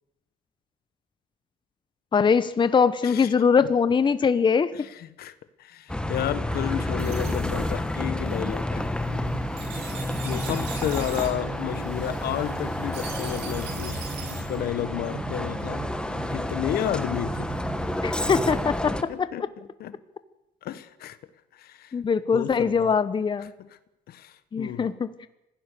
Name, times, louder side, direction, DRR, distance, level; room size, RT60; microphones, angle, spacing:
voice 1, 2.1-4.7 18.0-19.3 21.9-23.5 24.5-25.1, left 6 dB, 30° left, 0.9 m, -22 dB
voice 2, 4.7-9.0 10.2-15.8 16.3-17.5 19.1-19.9 20.6-21.2 21.5-21.9 22.3-22.9 23.6-23.8 24.1-24.9, left 11 dB, 65° left, 1.4 m, -32 dB
Bus, 5.9-19.0, left 1 dB, 5° left, 1.4 m, -30 dB
sound 1, 6.5-14.6, right 6 dB, 90° right, 7.2 m, -42 dB
sound 2, 9.1-18.7, right 8 dB, 55° right, 1.9 m, -40 dB
25.5 x 16.5 x 6.9 m
cardioid pair, 110°, 17 cm